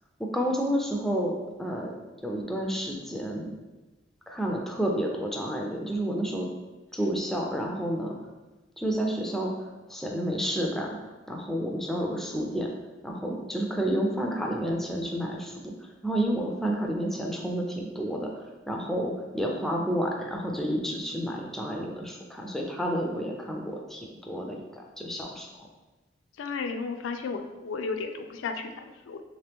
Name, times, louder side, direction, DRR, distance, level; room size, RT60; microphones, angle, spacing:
voice 1, 0.2-1.3 1.6-1.9 2.2-3.5 4.3-6.5 6.9-8.2 8.8-11.0 11.3-12.7 13.0-25.7, equal, ahead, -1 dB, 0.3 m, -30 dB
voice 2, 26.4-29.2, left 4 dB, 80° left, 7 dB, 0.3 m, -34 dB
3.2 x 2.8 x 3.4 m, 1.1 s
head